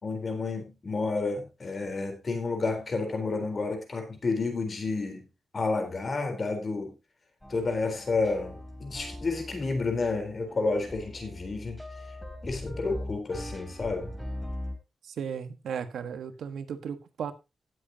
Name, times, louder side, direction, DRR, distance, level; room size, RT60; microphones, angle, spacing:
voice 1, 0.0-5.3 5.5-6.9 7.5-11.8 12.4-14.2, left 3 dB, 35° left, 3.8 m, -30 dB
sound 1, 7.4-14.7, left 1 dB, 5° left, 3.7 m, -40 dB
voice 2, 15.0-17.3, right 7 dB, 85° right, 1.4 m, -35 dB
17.5 x 7.9 x 2.8 m
wide cardioid pair, 130°, 0 cm